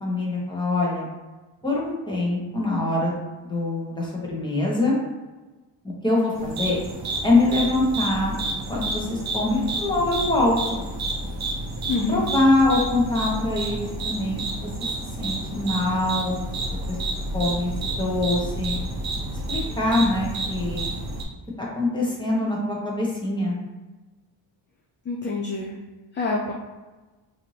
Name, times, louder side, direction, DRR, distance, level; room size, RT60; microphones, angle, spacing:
voice 1, 0.0-1.1 1.6-3.2 3.4-5.0 6.0-6.8 7.2-8.3 8.7-10.8 12.1-14.4 15.2-16.4 16.9-17.0 17.3-18.8 19.5-20.9 21.6-23.6, left 2 dB, 10° left, -4 dB, 1.0 m, -24 dB
sound 1, 6.4-21.2, right 2 dB, 35° right, 0.7 m, -30 dB
voice 2, 11.9-12.3 25.1-25.7 26.1-26.5, left 3 dB, 25° left, -1 dB, 0.3 m, -26 dB
4.2 x 2.7 x 3.2 m, 1.2 s
cardioid pair, 130°, 46 cm